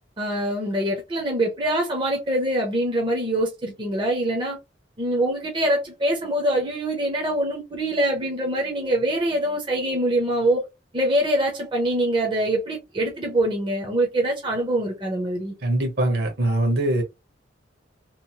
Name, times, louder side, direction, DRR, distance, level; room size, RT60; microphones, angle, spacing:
voice 1, 0.2-4.6 5.0-10.6 10.9-15.5, right 1 dB, 25° right, 0.6 m, -24 dB
voice 2, 15.6-17.0, right 1 dB, 60° right, 1.1 m, -22 dB
2.9 x 2.0 x 2.7 m
head